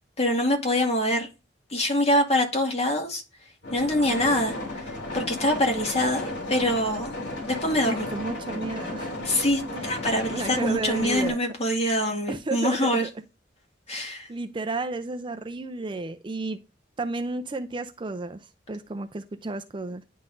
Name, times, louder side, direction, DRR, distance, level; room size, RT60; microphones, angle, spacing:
voice 1, 0.2-1.3 1.7-3.2 3.7-4.8 5.1-7.2 7.5-8.1 9.2-13.0 13.9-14.3, left 1 dB, 35° left, 1.9 m, -24 dB
sound 1, 3.6-11.3, left 2 dB, 80° left, 2.7 m, -34 dB
voice 2, 7.8-9.1 9.7-9.8 10.3-11.4 12.3-13.1 14.3-16.6 17.0-20.0, right 2 dB, 25° right, 0.4 m, -32 dB
10.5 x 3.9 x 2.6 m
head